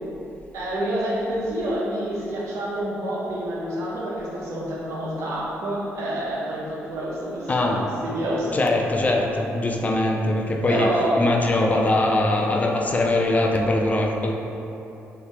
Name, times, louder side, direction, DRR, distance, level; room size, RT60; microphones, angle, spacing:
voice 1, 0.5-8.6 10.7-11.3, right 1 dB, 75° right, -6 dB, 1.0 m, -27 dB
voice 2, 7.5-7.8 8.5-10.9 11.2-14.3, left 2 dB, 30° left, 1 dB, 0.5 m, -22 dB
3.6 x 2.7 x 4.7 m, 2.9 s
cardioid pair, 80°, 5 cm